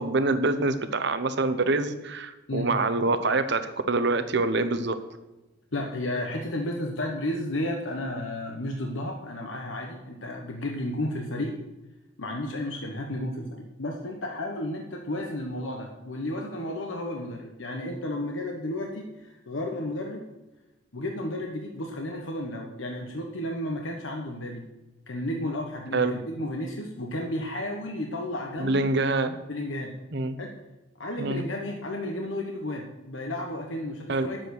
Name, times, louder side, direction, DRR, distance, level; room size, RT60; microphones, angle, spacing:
voice 1, 0.0-5.0 25.9-26.1 28.6-29.4 30.1-30.4 31.2-31.4 34.1-34.3, right 3 dB, 60° right, 10 dB, 0.9 m, -25 dB
voice 2, 5.7-11.5 12.2-20.2 20.9-24.7 25.1-28.9 29.5-29.9 30.4-30.5 31.0-34.4, left 1 dB, 75° left, 1 dB, 1.2 m, -32 dB
10.5 x 7.6 x 6.5 m, 1.0 s
head